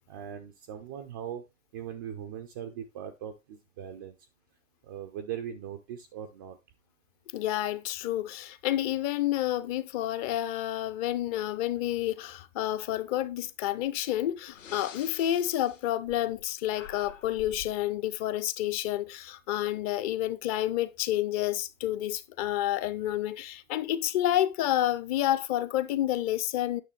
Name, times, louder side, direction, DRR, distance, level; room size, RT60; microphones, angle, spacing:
voice 1, 0.1-1.4 1.7-4.2 4.8-6.6, right 9 dB, 15° right, 0.3 m, -40 dB
voice 2, 7.3-26.8, left 13 dB, 30° left, 0.6 m, -29 dB
Breathing, 13.8-14.0 14.5-16.4 16.7-17.8, left 7 dB, 65° left, 1.6 m, -47 dB
9.2 x 6.7 x 3.2 m
figure-of-eight pair, 105°, 41 cm